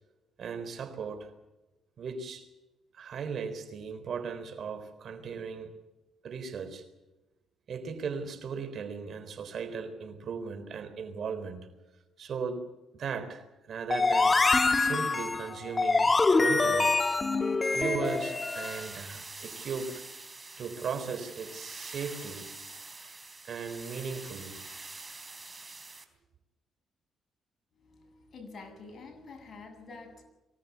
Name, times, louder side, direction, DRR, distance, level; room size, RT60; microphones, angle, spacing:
voice 1, 0.4-1.3 2.0-2.5 2.9-5.7 6.2-6.8 7.7-11.7 12.2-12.7 13.0-14.4 14.7-17.0 17.7-20.0 20.6-22.5 23.4-24.6, right 5 dB, 60° right, 3.9 m, -37 dB
sound 1, 13.9-18.8, left 3 dB, 25° left, 1.5 m, -25 dB
sound 2, 18.0-26.1, right 3 dB, 20° right, 3.8 m, -45 dB
voice 2, 27.7-30.2, left 3 dB, 45° left, 7.9 m, -48 dB
24.0 x 18.0 x 8.3 m
cardioid pair, 90°, 0 cm